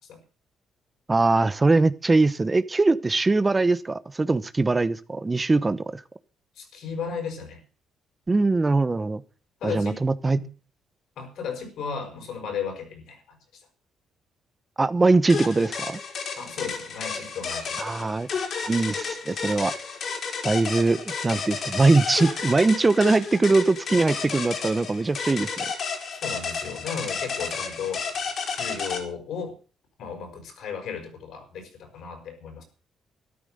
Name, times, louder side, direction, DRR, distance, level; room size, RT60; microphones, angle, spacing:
voice 1, 1.1-6.0 8.3-9.2 9.6-10.4 14.8-16.0 17.8-18.3 18.7-19.7 20.4-25.7, right 3 dB, 25° right, 15 dB, 0.9 m, -22 dB
voice 2, 6.6-7.6 9.6-10.0 10.3-10.5 11.2-13.7 16.4-18.0 18.9-19.1 26.1-29.6 30.0-32.6, left 6 dB, 75° left, 6 dB, 5.5 m, -35 dB
sound 1, 15.3-29.0, left 5 dB, 60° left, 4.3 m, -32 dB
13.5 x 12.0 x 6.6 m, 0.38 s
cardioid pair, 90°, 0 cm